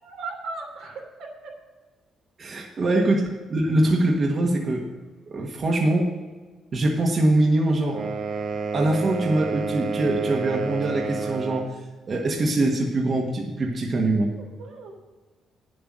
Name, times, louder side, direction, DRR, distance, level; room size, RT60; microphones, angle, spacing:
voice 1, 0.0-1.6 2.8-3.0 14.4-14.9, right 3 dB, 85° right, 0 dB, 3.1 m, -37 dB
voice 2, 2.4-4.9 5.3-6.1 6.7-8.1 8.7-14.3, right 1 dB, 45° right, 0 dB, 1.6 m, -23 dB
sound 1, 7.9-11.8, right 4 dB, 65° right, 1.3 m, -30 dB
9.5 x 8.0 x 6.3 m, 1.3 s
cardioid pair, 90°, 0 cm